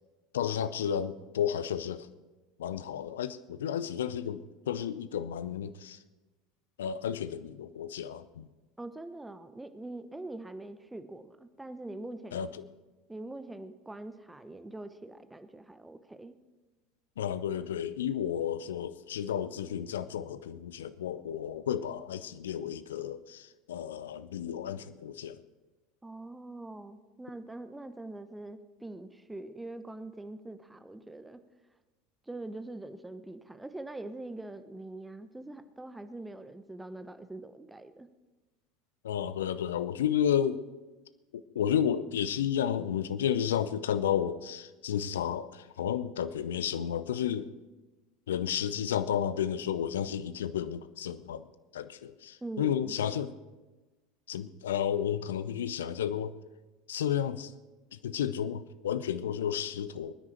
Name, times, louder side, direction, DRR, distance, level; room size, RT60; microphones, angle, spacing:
voice 1, 0.3-2.1 2.6-6.0 6.8-8.5 12.3-12.6 17.2-25.4 39.0-40.6 41.3-47.5 48.3-51.5 51.7-53.4 54.3-56.3 56.9-57.5 57.9-60.1, left 9 dB, 70° left, 14 dB, 0.6 m, -32 dB
voice 2, 8.8-12.5 13.1-16.3 26.0-31.4 32.3-38.1 52.4-52.9, right 2 dB, 10° right, 11 dB, 0.9 m, -43 dB
22.0 x 9.7 x 4.4 m, 1.2 s
figure-of-eight pair, 75°, 0 cm